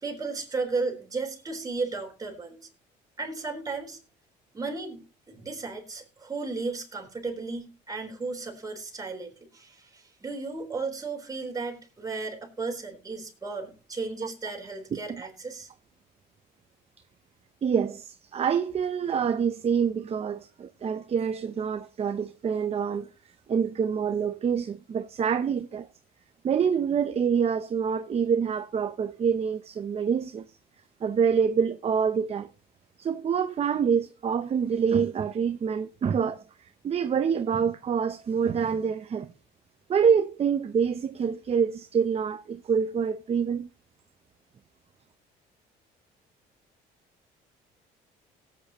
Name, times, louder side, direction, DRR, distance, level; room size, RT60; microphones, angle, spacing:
voice 1, 0.0-2.7 3.2-4.0 4.5-15.7, right 3 dB, 20° right, 4.1 m, -34 dB
voice 2, 17.6-23.1 23.5-25.9 26.4-30.4 31.0-32.5 33.0-36.4 36.8-39.3 39.9-43.7, right 7 dB, 35° right, 0.7 m, -26 dB
18.0 x 8.9 x 3.0 m
cardioid pair, 110°, 17 cm